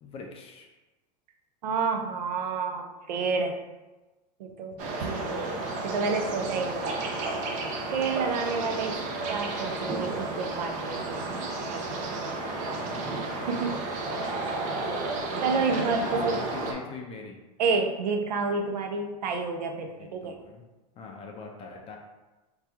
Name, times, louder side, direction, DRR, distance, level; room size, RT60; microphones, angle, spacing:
voice 1, 0.0-0.7 4.8-5.2 8.3-9.1 12.6-13.8 15.6-17.4 20.0-20.6 21.0-22.0, left 3 dB, 30° left, 1 dB, 0.4 m, -43 dB
voice 2, 1.6-3.6 4.4-5.2 5.8-7.0 7.9-9.0 9.3-12.1 13.5-13.8 15.4-16.4 17.6-20.3, right 4 dB, 85° right, 4 dB, 0.5 m, -29 dB
sound 1, 4.8-16.7, right 2 dB, 40° right, 0.5 m, -32 dB
2.8 x 2.3 x 3.4 m, 1.1 s
hypercardioid pair, 120°, 21 cm